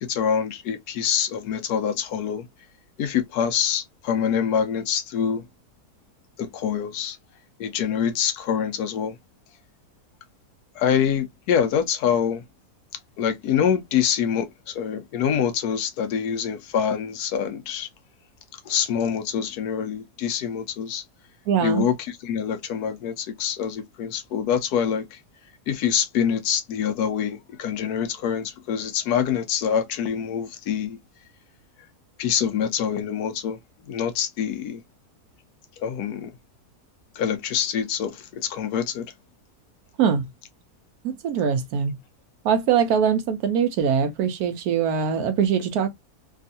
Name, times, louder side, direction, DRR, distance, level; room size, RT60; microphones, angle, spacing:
voice 1, 0.0-2.5 3.0-5.5 6.4-7.2 7.6-9.2 10.8-12.4 13.2-17.9 18.5-21.0 21.6-25.2 25.7-31.0 32.2-33.6 33.8-34.8 35.8-36.3 37.2-39.1, left 8 dB, 85° left, 1.1 m, -25 dB
voice 2, 21.5-21.9 40.0-40.3 41.0-42.0 42.4-45.9, right 7 dB, 75° right, 1.1 m, -22 dB
3.5 x 2.4 x 2.6 m
omnidirectional pair, 1.6 m